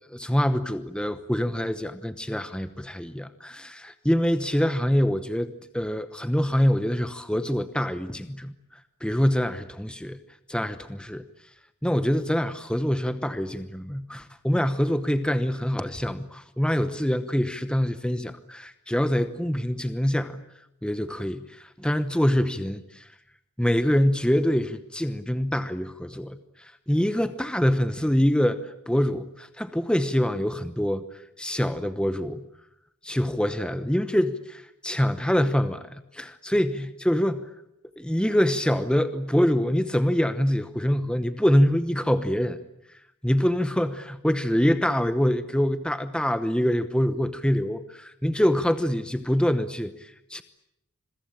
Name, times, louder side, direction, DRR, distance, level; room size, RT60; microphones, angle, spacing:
voice 1, 0.1-10.2 10.5-11.3 11.8-20.4 20.8-23.1 23.6-32.4 33.0-37.5 38.0-42.6 43.2-50.4, equal, 5° left, 10 dB, 0.9 m, -25 dB
26.5 x 22.5 x 8.7 m, 0.80 s
head